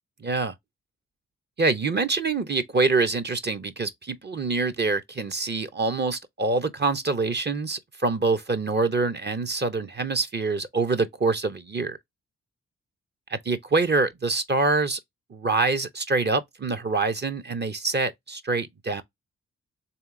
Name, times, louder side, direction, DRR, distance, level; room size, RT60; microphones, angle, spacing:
voice 1, 0.2-0.5 1.6-12.0 13.3-15.0 15.3-19.0, right 3 dB, 35° right, 0.7 m, -25 dB
3.3 x 2.8 x 3.7 m
supercardioid pair, 45°, 29 cm